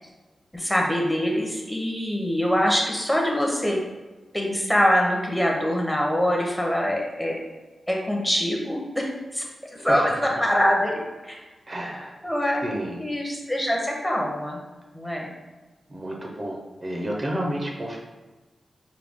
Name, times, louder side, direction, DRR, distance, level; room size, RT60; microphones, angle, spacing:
voice 1, 0.5-3.8 4.3-7.4 7.9-9.1 9.3-9.4 9.7-11.4 12.2-12.6 13.0-14.6 14.9-15.3, equal, 5° left, -1 dB, 0.7 m, -24 dB
voice 2, 11.7-12.1 12.6-13.0 15.1-15.3 15.9-18.0, right 1 dB, 30° right, -1 dB, 0.5 m, -31 dB
4.8 x 2.2 x 3.4 m, 1.2 s
wide cardioid pair, 120°, 0 cm